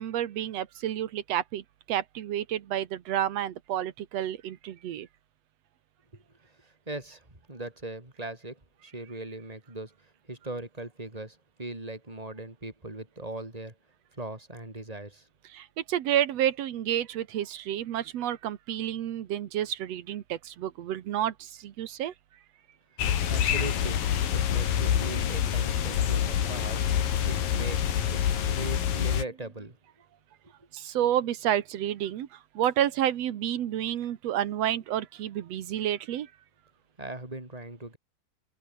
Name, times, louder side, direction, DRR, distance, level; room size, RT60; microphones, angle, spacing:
voice 1, 0.0-5.1 15.5-22.1 30.7-36.3, right 11 dB, 70° right, 1.6 m, -30 dB
voice 2, 6.6-13.7 14.1-15.3 23.0-24.0 24.3-26.8 27.3-29.8 37.0-38.0, right 2 dB, 10° right, 4.9 m, -40 dB
sound 1, 23.0-29.2, left 9 dB, 60° left, 3.8 m, -26 dB
omnidirectional pair, 4.7 m